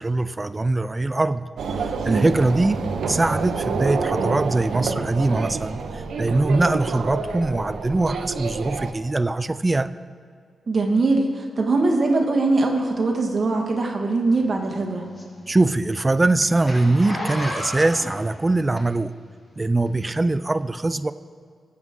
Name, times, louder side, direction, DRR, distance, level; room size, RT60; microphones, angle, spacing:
voice 1, 0.0-1.5 2.0-9.9 15.5-19.1 19.6-21.1, right 2 dB, 15° right, 13 dB, 0.3 m, -22 dB
Victoria line announcement Train Approaching to Brixton, 1.6-8.9, right 4 dB, 80° right, 0.8 m, -28 dB
voice 2, 10.7-15.1, right 3 dB, 40° right, 1 dB, 1.6 m, -21 dB
Zipper (clothing), 14.3-19.2 19.8-19.9, left 1 dB, 25° left, 2.0 m, -34 dB
20.5 x 7.9 x 3.7 m, 2.2 s
wide cardioid pair, 160°, 0 cm